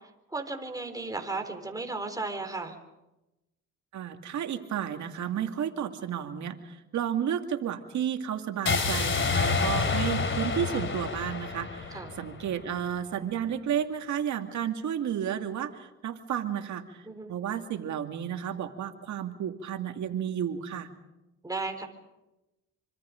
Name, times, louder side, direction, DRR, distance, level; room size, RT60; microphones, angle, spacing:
voice 1, 0.3-2.8 11.9-12.1 17.1-17.3 21.4-21.9, right 3 dB, 10° right, 4 dB, 3.9 m, -35 dB
voice 2, 3.9-6.6 6.9-17.0 17.3-20.9, right 9 dB, 70° right, 5 dB, 2.3 m, -32 dB
sound 1, 8.7-12.7, left 4 dB, 40° left, 3.2 m, -28 dB
25.5 x 25.5 x 5.2 m, 0.98 s
cardioid pair, 90°, 30 cm